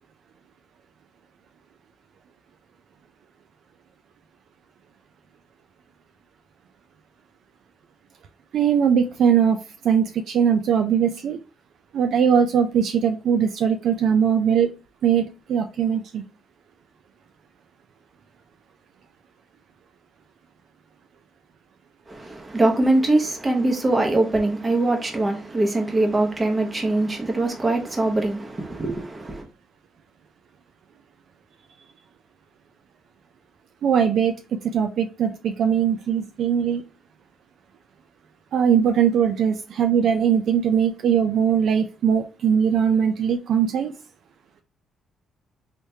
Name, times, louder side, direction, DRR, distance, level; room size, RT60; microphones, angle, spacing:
voice 1, 8.5-9.6 9.8-11.4 11.9-14.7 15.0-16.2 33.8-34.3 34.7-36.8 38.5-43.9, right 7 dB, 70° right, 0.4 m, -20 dB
voice 2, 22.1-29.4, right 2 dB, 25° right, 1.0 m, -22 dB
3.3 x 3.1 x 2.7 m
cardioid pair, 90°, 0 cm